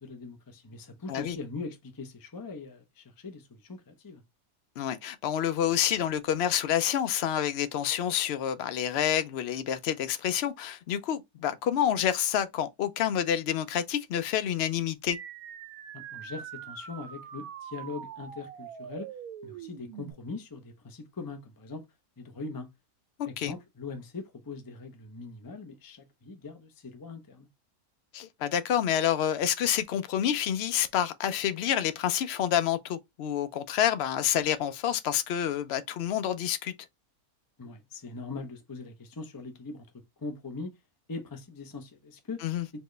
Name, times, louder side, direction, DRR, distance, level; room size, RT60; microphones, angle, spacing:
voice 1, 0.0-4.2 15.9-19.1 19.4-21.9 22.2-22.7 23.3-27.5 37.6-39.9 40.2-40.7 41.1-42.4 42.7-42.8, left 3 dB, 20° left, 0.6 m, -41 dB
voice 2, 4.8-15.2 23.4-23.5 28.1-36.7 42.4-42.7, left 10 dB, 65° left, 0.6 m, -28 dB
sound 1, 15.1-20.1, right 8 dB, 80° right, 1.1 m, -43 dB
4.3 x 2.9 x 3.2 m
omnidirectional pair, 1.5 m